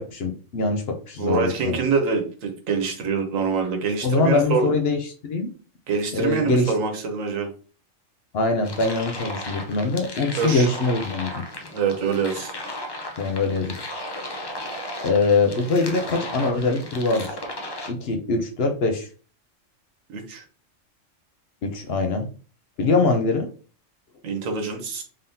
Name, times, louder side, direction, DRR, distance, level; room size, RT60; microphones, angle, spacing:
voice 1, 0.0-1.8 4.0-5.5 6.1-6.7 8.3-11.4 13.2-13.8 15.0-17.3 17.9-19.1 21.6-22.3 22.8-23.5, left 3 dB, 60° left, 4 dB, 0.8 m, -23 dB
voice 2, 1.2-4.7 5.9-7.5 10.3-10.7 11.7-12.5 20.1-20.4 24.2-25.0, right 5 dB, 80° right, 4 dB, 1.3 m, -25 dB
sound 1, 8.6-17.9, left 1 dB, 35° left, 0.4 m, -35 dB
3.8 x 3.5 x 2.7 m, 0.39 s
omnidirectional pair, 1.3 m